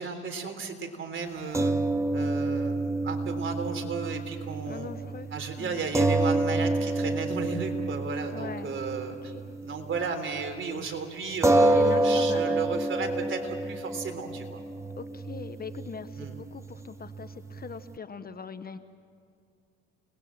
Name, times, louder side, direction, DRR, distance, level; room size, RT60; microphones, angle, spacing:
voice 1, 0.0-1.8 2.1-4.9 5.3-9.3 9.6-14.6 16.2-16.3, right 5 dB, 40° right, 5 dB, 3.7 m, -34 dB
sound 1, 1.5-10.1 10.4-10.5 11.4-18.0, right 2 dB, 10° right, 1.0 m, -28 dB
voice 2, 4.7-5.3 5.6-5.8 8.3-8.7 9.2-9.5 11.6-12.6 15.0-18.8, left 5 dB, 30° left, 11 dB, 1.0 m, -40 dB
29.0 x 20.0 x 7.4 m, 2.3 s
supercardioid pair, 85°, 31 cm